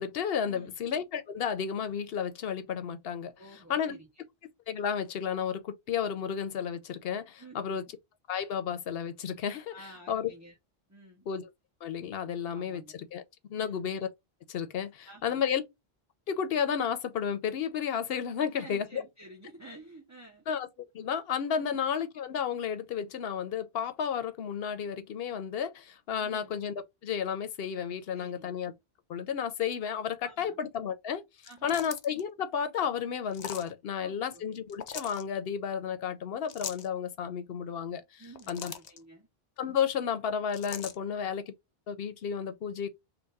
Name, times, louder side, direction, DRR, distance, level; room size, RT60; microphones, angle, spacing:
voice 1, 0.0-3.3 3.7-4.0 4.7-7.8 8.3-9.7 10.1-10.3 11.3-11.5 11.8-13.2 13.5-14.1 14.5-15.6 16.3-19.0 20.5-20.7 20.9-26.7 27.0-28.7 29.1-31.2 31.6-38.7 39.6-41.5 41.9-42.9, left 7 dB, 70° left, 0.9 m, -32 dB
voice 2, 3.4-4.2 7.4-7.9 9.7-10.6 10.9-11.3 12.5-13.0 13.6-13.9 15.1-15.5 18.5-20.5 21.6-21.8 26.2-26.5 28.1-28.6 30.2-30.6 31.4-31.9 33.9-34.5 38.2-39.3 41.1-41.3, right 1 dB, 20° right, 0.6 m, -51 dB
sound 1, 31.4-32.2 33.3-33.7 34.7-35.2 36.5-36.9 38.1-39.0 40.5-41.0, left 8 dB, 55° left, 0.5 m, -40 dB
3.5 x 2.2 x 4.0 m
omnidirectional pair, 1.0 m